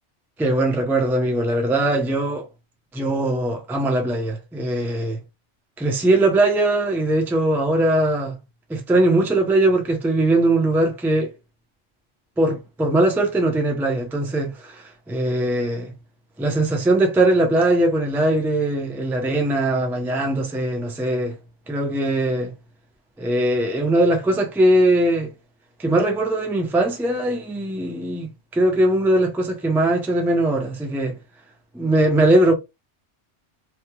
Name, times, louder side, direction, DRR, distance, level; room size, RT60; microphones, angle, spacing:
voice 1, 0.4-2.5 2.9-5.2 5.8-8.4 8.7-11.3 12.4-15.9 16.4-21.3 21.7-22.5 23.2-25.3 25.8-31.2 31.7-32.5, right 1 dB, 5° right, 0.4 m, -20 dB
3.4 x 2.3 x 2.8 m
omnidirectional pair, 1.3 m